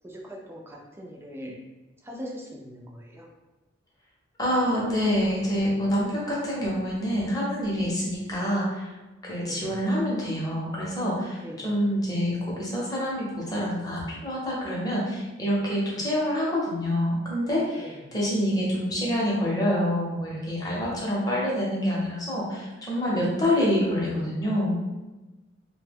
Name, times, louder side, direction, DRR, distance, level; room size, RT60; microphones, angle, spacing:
voice 1, 0.0-1.6 2.0-3.3 9.4-9.7 11.4-11.7 14.9-15.4 17.8-18.2 20.9-21.8, equal, 10° right, -1 dB, 0.4 m, -42 dB
voice 2, 4.4-8.9 9.2-24.8, equal, 20° left, -5 dB, 0.8 m, -26 dB
2.8 x 2.2 x 3.4 m, 1.1 s
head